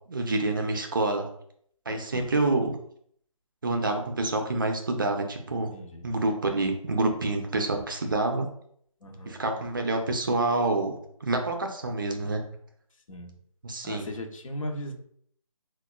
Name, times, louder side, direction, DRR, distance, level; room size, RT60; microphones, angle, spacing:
voice 1, 0.1-1.3 1.9-2.8 3.6-5.7 6.0-8.5 9.3-12.4 13.6-14.1, right 2 dB, 35° right, 4 dB, 0.4 m, -27 dB
voice 2, 1.9-2.3 5.7-6.1 9.0-9.4 13.1-13.3 13.8-14.9, left 1 dB, 65° left, 3 dB, 0.7 m, -38 dB
4.0 x 2.2 x 2.2 m, 0.65 s
figure-of-eight pair, 160°, 18 cm